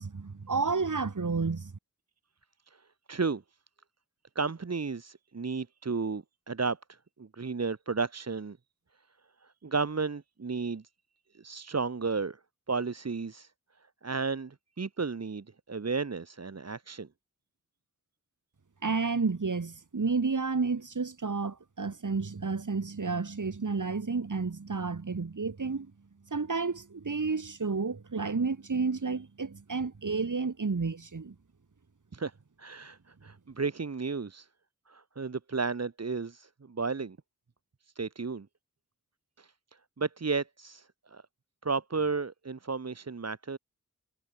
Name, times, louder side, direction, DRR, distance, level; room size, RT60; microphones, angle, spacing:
voice 1, 0.0-1.7 18.8-25.9 26.3-31.3, right 4 dB, 65° right, 3.2 m, -31 dB
voice 2, 3.1-3.4 4.3-8.6 9.4-10.8 11.3-12.4 12.7-13.5 14.0-17.1 32.1-32.3 32.6-34.5 34.9-37.2 37.9-38.5 39.4-39.5 40.0-41.2 41.6-43.6, right 4 dB, 50° right, 1.4 m, -33 dB
wide cardioid pair, 55°, 32 cm